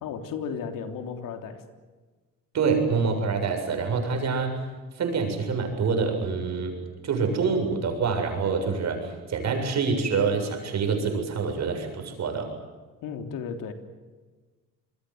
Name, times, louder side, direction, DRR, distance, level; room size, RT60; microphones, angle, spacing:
voice 1, 0.0-1.6 13.0-13.7, left 6 dB, 75° left, 6 dB, 3.4 m, -34 dB
voice 2, 2.5-4.6 4.9-6.8 7.0-12.5, right 5 dB, 55° right, 5 dB, 7.6 m, -26 dB
27.5 x 22.0 x 8.0 m, 1.3 s
cardioid pair, 105°, 33 cm